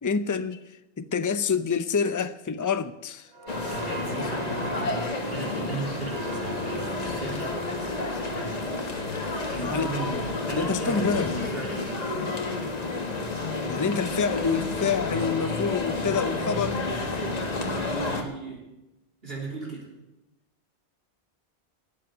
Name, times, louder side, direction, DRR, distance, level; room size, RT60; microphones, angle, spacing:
voice 1, 0.0-3.3 9.6-9.9 10.5-11.4 13.7-16.8, left 6 dB, 25° left, 0.5 m, -27 dB
sound 1, 3.3-10.8 11.2-11.4, right 1 dB, 80° right, 1.9 m, -40 dB
sound 2, 3.5-18.2, left 2 dB, 40° left, 1.6 m, -30 dB
voice 2, 3.7-7.6 8.3-8.6 9.5-10.2 10.5-11.9 17.7-18.6 19.2-19.9, right 2 dB, 60° right, 3.7 m, -36 dB
13.0 x 8.5 x 9.4 m
omnidirectional pair, 1.1 m